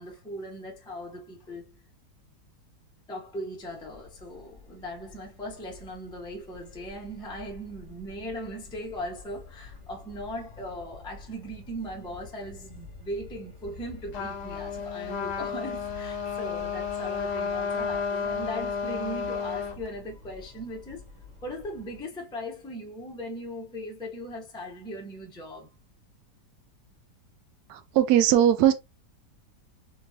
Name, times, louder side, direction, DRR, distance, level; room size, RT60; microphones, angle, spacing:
voice 1, 0.0-1.7 3.1-21.1 21.4-25.7, equal, 5° left, 0.6 m, -38 dB
sound 1, 3.6-22.0, left 4 dB, 30° right, 1.9 m, -48 dB
Trumpet, 14.1-19.8, left 5 dB, 80° left, 1.4 m, -32 dB
voice 2, 27.7-28.7, right 11 dB, 75° right, 1.1 m, -20 dB
3.7 x 2.8 x 2.8 m
omnidirectional pair, 1.8 m